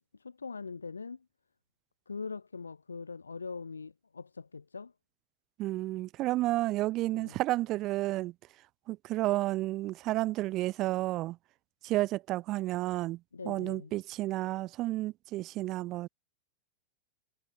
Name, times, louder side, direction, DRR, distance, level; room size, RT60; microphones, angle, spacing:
voice 1, 0.1-1.3 2.1-4.9 7.1-7.4 13.3-13.9, left 4 dB, 75° left, 5.5 m, -42 dB
voice 2, 5.6-8.3 8.9-11.4 11.8-13.2 13.5-16.1, right 17 dB, 35° right, 2.1 m, -31 dB
figure-of-eight pair, 90°, 0 cm